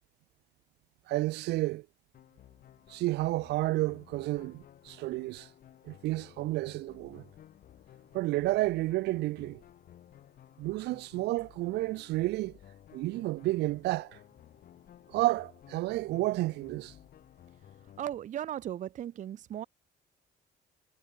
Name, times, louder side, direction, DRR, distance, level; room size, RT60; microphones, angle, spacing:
voice 1, 1.1-1.9 2.9-5.5 5.8-7.3 8.1-9.6 10.6-12.6 12.9-14.2 15.1-16.9, right 18 dB, 80° right, 1.0 m, -31 dB
sound 1, 2.1-18.2, left 11 dB, 60° left, 5.2 m, -56 dB
voice 2, 18.0-19.6, right 11 dB, 45° right, 0.7 m, -37 dB
cardioid pair, 110°, 17 cm